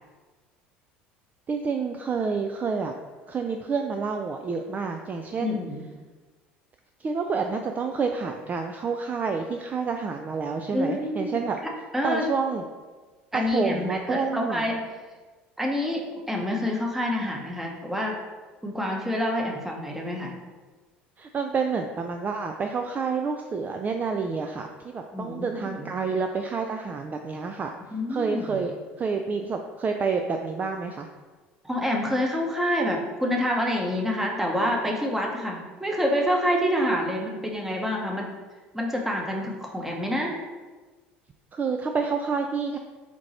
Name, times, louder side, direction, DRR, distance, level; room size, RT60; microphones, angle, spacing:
voice 1, 1.5-2.9 3.3-5.6 7.0-11.6 12.0-12.6 13.3-14.6 21.2-27.7 28.1-31.1 41.5-42.8, right 5 dB, 30° right, 5 dB, 0.3 m, -28 dB
voice 2, 5.4-5.9 10.7-12.3 13.3-14.7 15.6-16.0 16.3-18.2 18.6-20.3 25.1-25.9 27.9-28.6 31.6-38.3 38.7-40.3, left 1 dB, 5° right, 0 dB, 1.0 m, -27 dB
4.4 x 2.8 x 4.2 m, 1.3 s
hypercardioid pair, 70°, 6 cm